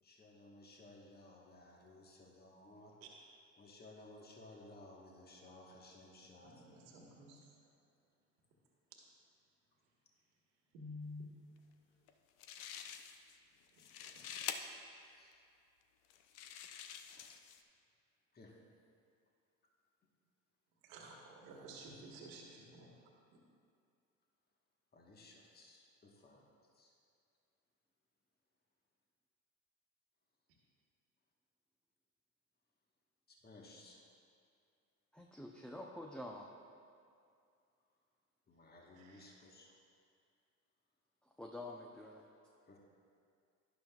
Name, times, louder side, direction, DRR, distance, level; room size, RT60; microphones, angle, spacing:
voice 1, 0.0-2.9 3.6-6.5 14.4-15.4 18.3-18.5 24.9-26.4 26.8-26.9 33.3-34.0 38.5-39.7 42.7-42.8, left 2 dB, 25° left, -1 dB, 1.4 m, -58 dB
voice 2, 6.4-7.4 10.7-11.2 14.0-14.1 20.8-22.9 38.9-39.3, equal, 80° right, -1 dB, 1.5 m, -51 dB
sound 1, 12.1-12.2 12.4-13.4 13.7-14.6 15.3-15.4 16.1-17.6, left 9 dB, 70° left, 0.7 m, -46 dB
voice 3, 35.1-36.5 41.4-42.2, left 1 dB, 5° left, 0 dB, 0.6 m, -48 dB
12.0 x 10.0 x 2.4 m, 2.4 s
hypercardioid pair, 70°, 39 cm